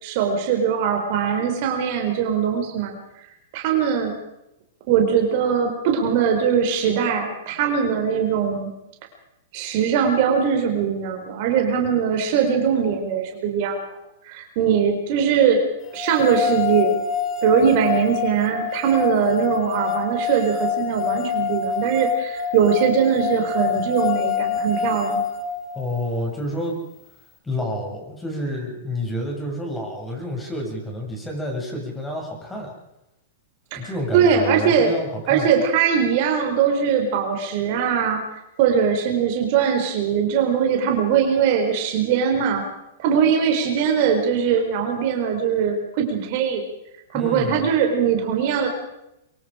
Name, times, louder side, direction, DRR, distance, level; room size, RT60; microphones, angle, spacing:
voice 1, 0.0-2.9 3.5-4.1 4.9-8.7 9.5-13.8 14.2-15.6 15.9-17.0 17.4-25.3 33.7-34.9 35.3-38.2 38.6-42.6 43.0-46.6 47.1-48.7, right 7 dB, 50° right, 4 dB, 4.2 m, -21 dB
sound 1, 15.9-26.1, left 7 dB, 30° left, 2.8 m, -26 dB
voice 2, 25.7-26.8 27.4-32.7 33.7-35.5 47.1-47.7, left 1 dB, 10° left, 0 dB, 7.0 m, -29 dB
24.0 x 22.5 x 5.1 m, 0.87 s
hypercardioid pair, 120°, 0 cm